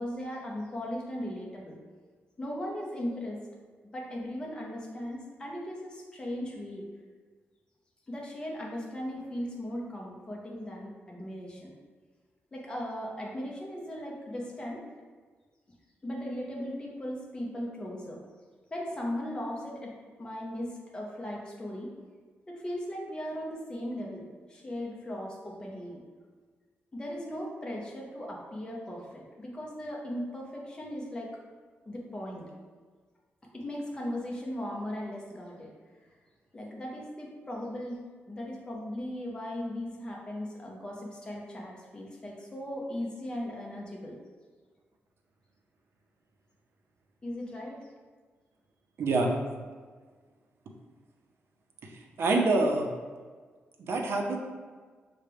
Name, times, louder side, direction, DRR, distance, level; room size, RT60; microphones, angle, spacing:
voice 1, 0.0-1.8 2.4-3.4 3.9-6.9 8.1-11.7 12.5-14.8 16.0-18.2 18.7-21.9 22.5-26.0 26.9-31.4 31.9-32.5 33.5-35.7 36.5-44.2 47.2-47.9, left 1 dB, 20° left, -2 dB, 0.8 m, -38 dB
voice 2, 49.0-49.3 51.8-52.9 53.8-54.4, right 2 dB, 70° right, 1 dB, 0.6 m, -26 dB
6.5 x 2.2 x 3.4 m, 1.5 s
wide cardioid pair, 150°, 4 cm